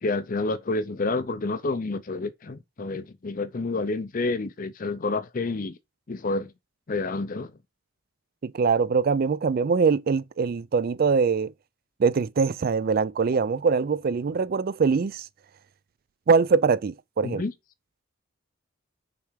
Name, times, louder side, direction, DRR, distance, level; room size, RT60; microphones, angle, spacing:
voice 1, 0.0-5.8 6.1-6.5 6.9-7.5 17.2-17.5, left 3 dB, 40° left, 0.5 m, -29 dB
voice 2, 8.4-11.5 12.0-15.3 16.3-17.4, right 5 dB, 45° right, 0.3 m, -23 dB
6.8 x 3.4 x 4.7 m
head